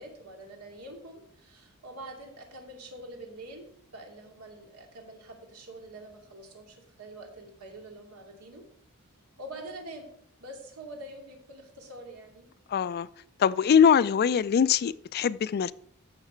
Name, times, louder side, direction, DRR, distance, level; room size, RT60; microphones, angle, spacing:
voice 1, 0.0-8.7 9.4-10.1 10.4-12.5, right 1 dB, 85° right, 2.5 m, -45 dB
voice 2, 12.7-13.1 13.4-15.7, left 7 dB, 45° left, 0.3 m, -22 dB
14.5 x 5.8 x 4.4 m
head